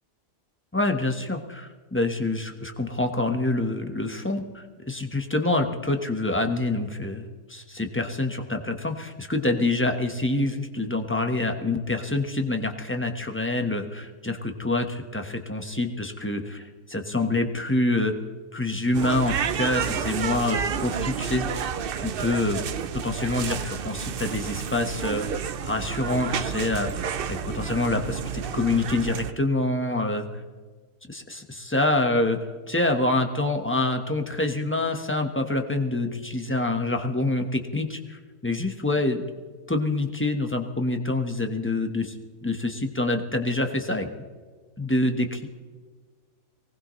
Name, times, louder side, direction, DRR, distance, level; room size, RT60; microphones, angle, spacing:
voice 1, 0.7-18.2 18.5-21.7 22.0-22.6 22.9-26.9 27.3-30.2 31.1-32.4 32.7-39.2 39.7-42.1 42.4-44.1 44.8-45.5, left 2 dB, 10° left, 4 dB, 1.2 m, -26 dB
sound 1, 18.9-29.3, right 8 dB, 55° right, 0.7 m, -30 dB
24.0 x 19.0 x 3.2 m, 1.4 s
omnidirectional pair, 1.4 m